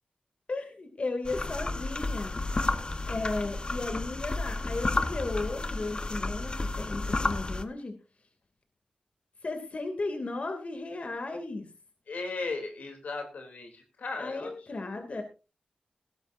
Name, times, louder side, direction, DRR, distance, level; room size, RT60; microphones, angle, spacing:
voice 1, 0.5-2.4 3.1-8.0 9.4-11.7 14.2-15.2, left 3 dB, 55° left, 5 dB, 2.8 m, -35 dB
sound 1, 1.2-7.6, left 2 dB, 40° left, 1.1 m, -31 dB
voice 2, 12.1-14.5 14.8-15.2, left 3 dB, 90° left, 3 dB, 3.3 m, -37 dB
19.0 x 12.0 x 2.7 m, 0.31 s
cardioid pair, 60°, 3 cm